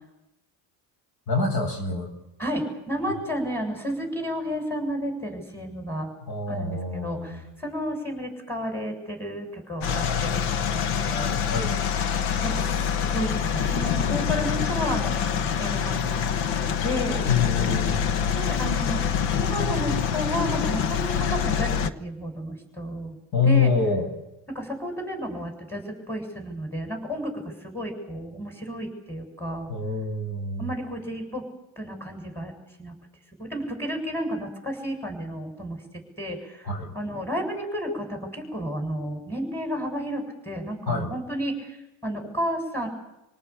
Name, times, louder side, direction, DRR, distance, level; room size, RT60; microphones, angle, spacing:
voice 1, 1.3-2.1 6.3-7.5 11.5-11.7 17.3-18.0 23.3-24.1 29.7-30.7 36.6-36.9 40.9-41.1, left 4 dB, 50° left, 4 dB, 7.9 m, -25 dB
voice 2, 2.4-6.1 6.5-11.3 12.4-12.7 13.0-17.2 18.3-19.0 19.3-23.2 23.4-23.7 24.5-27.3 27.6-29.7 30.6-31.4 31.8-32.5 32.8-32.9 33.4-35.8 36.2-41.8 42.0-42.9, equal, 5° left, 3 dB, 7.6 m, -32 dB
sound 1, 9.8-21.9, left 7 dB, 85° left, 1.4 m, -25 dB
28.0 x 18.5 x 8.7 m, 0.90 s
cardioid pair, 125°, 47 cm